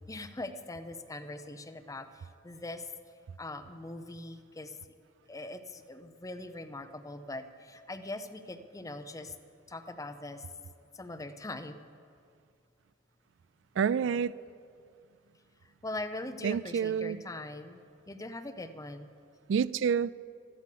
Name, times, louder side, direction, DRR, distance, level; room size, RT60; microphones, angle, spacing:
voice 1, 0.1-2.9 3.4-4.8 5.3-9.4 9.7-10.5 10.9-11.8 15.6-17.8 18.1-19.1, left 2 dB, 20° left, 0.7 m, -41 dB
voice 2, 13.8-14.4 16.4-17.2 19.5-20.1, right 7 dB, 75° right, 0.3 m, -28 dB
13.0 x 12.0 x 6.7 m
head